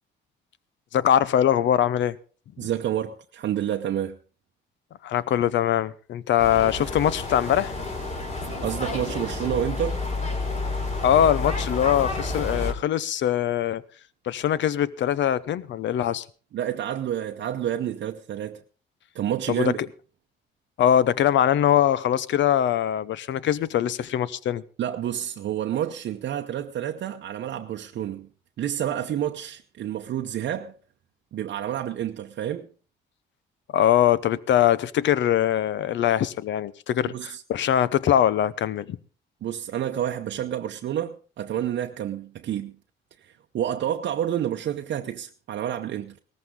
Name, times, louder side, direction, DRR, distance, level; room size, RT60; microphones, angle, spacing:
voice 1, 0.9-2.2 2.6-2.7 5.0-7.7 11.0-13.8 14.3-16.2 19.5-19.7 20.8-24.6 33.7-39.0, left 10 dB, 70° left, 0.8 m, -22 dB
voice 2, 2.6-4.2 8.6-10.0 16.5-18.6 19.1-19.8 24.8-28.3 28.6-30.7 31.3-32.7 37.1-37.4 39.4-42.7 43.2-46.2, right 10 dB, 65° right, 0.8 m, -29 dB
sound 1, 6.4-12.7, left 3 dB, 35° left, 3.3 m, -30 dB
17.5 x 14.0 x 3.7 m
cardioid pair, 90°, 20 cm